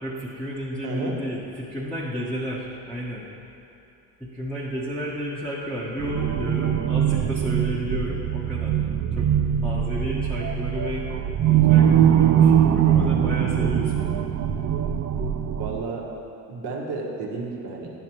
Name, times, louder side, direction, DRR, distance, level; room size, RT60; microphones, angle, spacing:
voice 1, 0.0-3.3 4.2-8.8 9.1-9.3 9.6-11.1 11.4-14.3, equal, ahead, -9 dB, 1.1 m, -32 dB
voice 2, 0.8-1.2 15.5-16.1 16.5-17.9, right 3 dB, 60° right, -1 dB, 1.5 m, -32 dB
sound 1, 6.0-15.8, right 9 dB, 40° right, 0.5 m, -21 dB
10.5 x 6.4 x 3.0 m, 2.8 s
hypercardioid pair, 75°, 45 cm